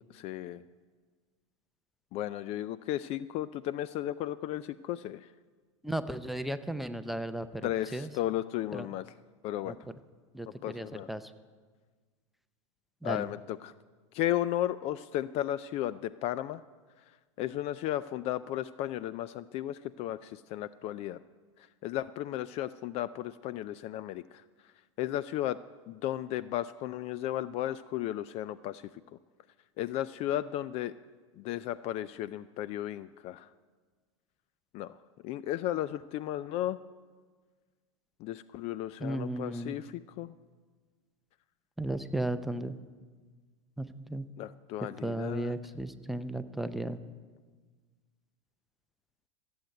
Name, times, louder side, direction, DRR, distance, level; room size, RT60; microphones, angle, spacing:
voice 1, 0.1-0.6 2.1-5.3 7.6-9.1 9.4-9.8 10.6-11.1 13.0-13.7 14.1-16.6 17.4-21.2 21.8-24.4 25.0-25.6 25.9-28.8 29.8-30.9 31.4-33.5 34.7-35.0 35.2-36.8 38.2-40.3 44.4-45.5, left 13 dB, 40° left, 16 dB, 0.4 m, -34 dB
voice 2, 5.8-8.1 8.7-8.9 9.7-9.8 10.3-11.3 13.0-13.3 39.0-39.8 41.8-42.8 43.8-44.3 45.0-47.0, right 1 dB, ahead, 12 dB, 0.6 m, -35 dB
14.5 x 8.0 x 9.1 m, 1.5 s
hypercardioid pair, 110°, 16 cm